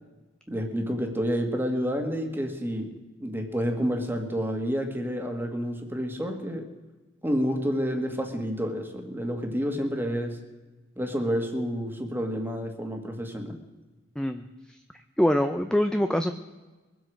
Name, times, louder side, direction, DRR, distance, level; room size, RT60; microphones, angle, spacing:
voice 1, 0.5-2.9 3.2-6.7 7.2-10.4 11.0-13.6, equal, 10° right, 4 dB, 1.7 m, -29 dB
voice 2, 14.2-14.5 15.2-16.3, equal, 5° left, 7 dB, 0.5 m, -24 dB
22.5 x 7.9 x 6.3 m, 1.2 s
head